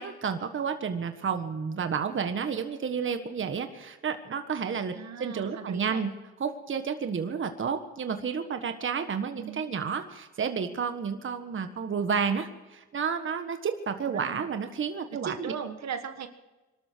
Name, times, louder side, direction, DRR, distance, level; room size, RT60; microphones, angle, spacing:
voice 1, 0.0-6.1 6.4-15.5, right 6 dB, 40° right, 7 dB, 1.5 m, -31 dB
voice 2, 4.9-6.1 9.3-9.7 14.1-14.5 15.1-16.3, right 7 dB, 60° right, 8 dB, 1.6 m, -38 dB
23.5 x 12.5 x 4.6 m, 1.1 s
cardioid pair, 90°, 30 cm